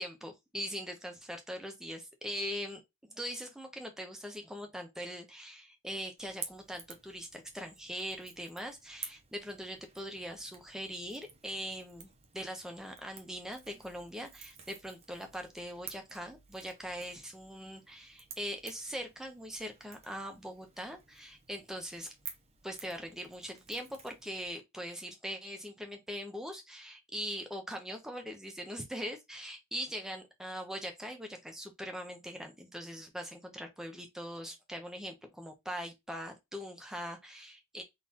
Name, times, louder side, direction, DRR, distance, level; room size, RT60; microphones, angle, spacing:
voice 1, 0.0-2.8 3.1-22.1 22.6-37.8, equal, ahead, 1.1 m, -41 dB
Crackle / Crack, 6.2-24.5, right 6 dB, 30° right, 0.9 m, -52 dB
4.0 x 3.3 x 3.0 m
head